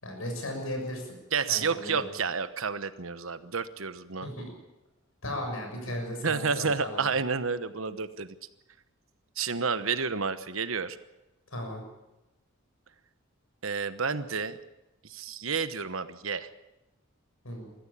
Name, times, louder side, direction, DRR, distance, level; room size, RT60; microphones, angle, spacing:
voice 1, 0.0-1.1 1.5-2.1 4.2-4.4 5.2-7.0 11.5-11.8 17.4-17.7, left 1 dB, 75° left, 3 dB, 6.8 m, -36 dB
voice 2, 1.3-4.3 6.2-8.3 9.4-11.0 13.6-14.6 15.0-16.5, right 5 dB, 70° right, 12 dB, 1.1 m, -30 dB
22.5 x 14.0 x 8.7 m, 0.98 s
head